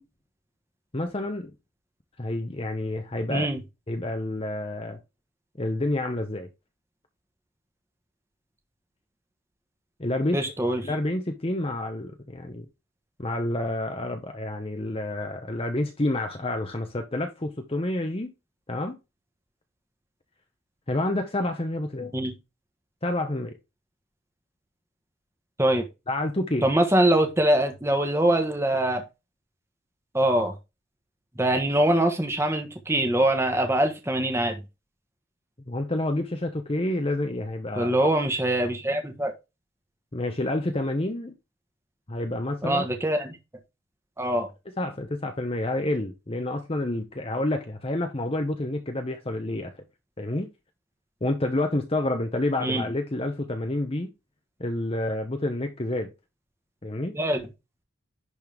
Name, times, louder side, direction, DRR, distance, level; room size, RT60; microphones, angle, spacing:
voice 1, 0.9-1.5 2.2-3.5 3.9-5.0 5.6-6.5 10.0-10.4 10.8-12.7 13.2-18.3 18.7-19.0 20.9-22.1 23.0-23.5 26.1-26.7 35.7-38.1 40.1-41.3 42.1-42.9 44.8-49.7 50.2-50.5 51.2-54.1 54.6-56.1 56.8-57.1, left 1 dB, 30° left, 1.0 m, -28 dB
voice 2, 3.3-3.6 10.3-10.8 22.1-22.3 25.6-25.9 26.6-29.0 30.1-30.5 31.4-34.6 37.7-39.3 42.6-43.4 44.2-44.5 52.6-52.8 57.1-57.4, right 1 dB, 15° right, 1.4 m, -23 dB
11.0 x 4.3 x 3.5 m
head